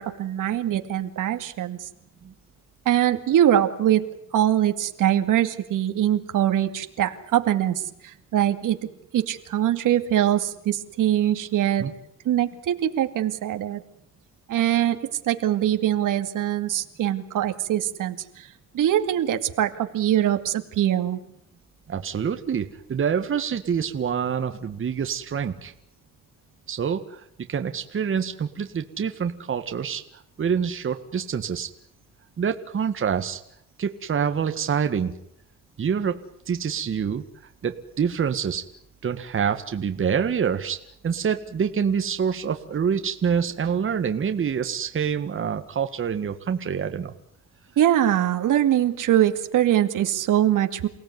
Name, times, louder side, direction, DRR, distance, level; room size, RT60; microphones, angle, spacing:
voice 1, 0.0-1.9 2.9-4.1 4.3-8.9 9.1-11.9 12.2-13.8 14.5-21.2 47.8-50.9, right 11 dB, 70° right, 7 dB, 2.3 m, -23 dB
voice 2, 21.9-25.7 26.7-27.2 27.5-30.0 30.4-31.7 32.4-33.4 33.8-35.1 35.8-36.2 36.5-37.2 37.6-38.6 39.0-47.1, right 7 dB, 40° right, 7 dB, 1.7 m, -26 dB
29.0 x 17.5 x 9.5 m, 0.73 s
cardioid pair, 115°, 32 cm